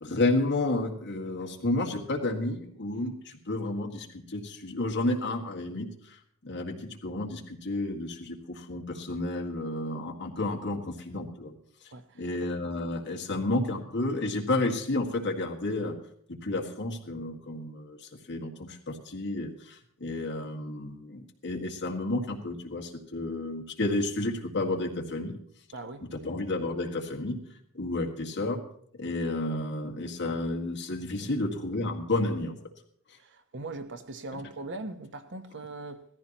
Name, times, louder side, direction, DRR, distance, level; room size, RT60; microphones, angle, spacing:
voice 1, 0.0-11.5 12.2-16.0 16.3-18.0 18.3-25.4 26.2-27.4 27.7-28.6 29.0-32.6, left 2 dB, 55° left, 2.0 m, -31 dB
voice 2, 11.9-12.4 25.7-26.1 31.2-31.3 33.2-36.0, right 2 dB, 55° right, 1.0 m, -40 dB
18.0 x 14.5 x 3.0 m
head